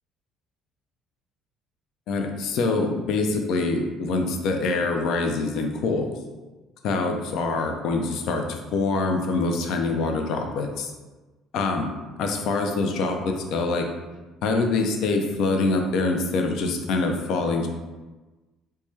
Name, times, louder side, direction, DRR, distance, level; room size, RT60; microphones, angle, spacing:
voice 1, 2.1-6.1 6.8-10.9 11.5-11.9 12.2-13.8 14.4-17.7, left 3 dB, 60° left, 4 dB, 0.4 m, -25 dB
3.1 x 2.2 x 2.9 m, 1.2 s
figure-of-eight pair, 55°, 0 cm